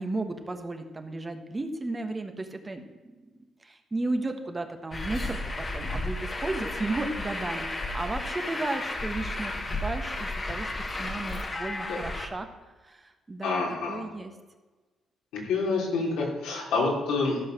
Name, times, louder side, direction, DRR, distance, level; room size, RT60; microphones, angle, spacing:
voice 1, 0.0-2.8 3.6-9.5 9.8-10.7 11.0-12.5 12.8-14.3, right 2 dB, 25° right, 6 dB, 1.3 m, -34 dB
Truck, 4.9-12.3, left 2 dB, 30° left, 1.5 m, -33 dB
voice 2, 13.4-14.0 15.3-17.4, left 3 dB, 85° left, -1 dB, 3.0 m, -27 dB
13.0 x 5.6 x 6.5 m, 1.2 s
cardioid pair, 90°, 0 cm